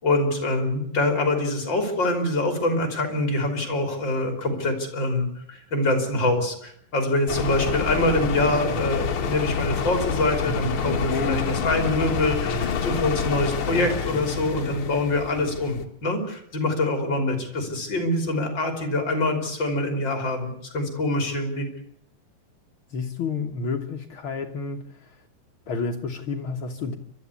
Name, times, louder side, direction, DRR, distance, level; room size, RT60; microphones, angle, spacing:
voice 1, 0.0-21.7, left 2 dB, 30° left, 6 dB, 3.5 m, -25 dB
sound 1, 7.3-15.8, left 6 dB, 50° left, 1.9 m, -27 dB
voice 2, 22.9-25.2 25.7-27.0, left 4 dB, 65° left, 4 dB, 1.3 m, -30 dB
30.0 x 13.0 x 8.4 m, 0.74 s
omnidirectional pair, 4.1 m